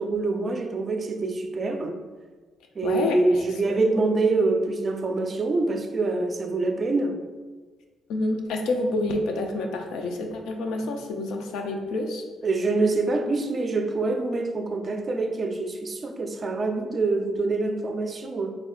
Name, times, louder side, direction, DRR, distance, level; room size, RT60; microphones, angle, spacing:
voice 1, 0.0-2.0 2.8-7.2 12.4-18.5, right 3 dB, 40° right, 6 dB, 0.4 m, -25 dB
voice 2, 2.8-3.2 3.7-3.8 8.1-12.2, left 2 dB, 90° left, 3 dB, 0.4 m, -28 dB
3.4 x 2.1 x 3.5 m, 1.3 s
cardioid pair, 90°, 0 cm